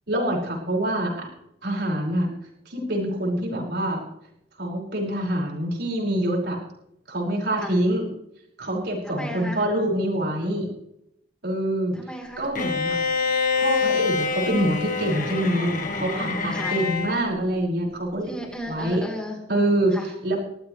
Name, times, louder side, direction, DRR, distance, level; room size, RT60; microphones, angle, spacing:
voice 1, 0.1-1.3 1.6-2.3 2.7-4.0 4.6-6.6 7.1-8.1 8.6-10.7 11.4-11.9 12.4-13.0 13.5-18.3 18.7-19.0 19.5-19.9 20.2-20.4, right 1 dB, 65° right, -2 dB, 5.8 m, -25 dB
voice 2, 9.0-9.7 11.9-12.5 16.5-16.8 18.2-19.5 19.9-20.1, left 1 dB, 5° left, 0 dB, 3.8 m, -35 dB
Bowed string instrument, 12.6-17.2, left 5 dB, 50° left, 1.8 m, -26 dB
21.5 x 14.5 x 3.3 m, 0.78 s
head